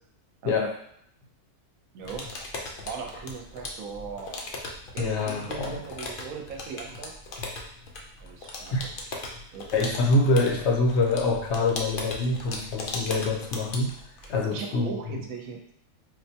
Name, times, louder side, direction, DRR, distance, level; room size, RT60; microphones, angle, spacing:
sound 1, 2.0-14.4, left 2 dB, 85° left, 0.4 m, -38 dB
voice 1, 2.8-4.5 4.9-7.1 8.2-8.7 9.5-9.7 14.2-15.6, right 5 dB, 70° right, 2 dB, 1.0 m, -38 dB
voice 2, 5.0-5.7 8.7-8.9 9.7-13.9 14.3-14.9, left 2 dB, 60° left, 0 dB, 0.8 m, -25 dB
4.4 x 2.2 x 2.7 m, 0.70 s
omnidirectional pair, 1.6 m